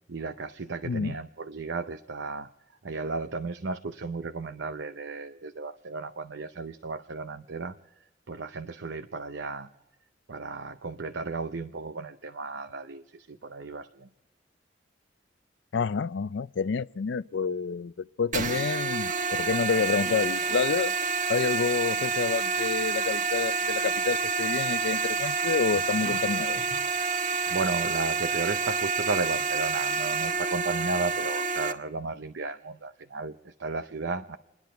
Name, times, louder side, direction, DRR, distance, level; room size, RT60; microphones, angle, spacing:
voice 1, 0.1-2.5 2.8-7.8 8.3-9.7 10.3-14.1 27.5-34.4, right 3 dB, 80° right, 0.7 m, -34 dB
voice 2, 0.8-1.2 15.7-17.9 18.2-20.9 21.3-26.6, left 5 dB, 70° left, 0.4 m, -28 dB
sound 1, 18.3-31.7, right 4 dB, 45° right, 1.1 m, -28 dB
29.5 x 10.5 x 4.5 m
head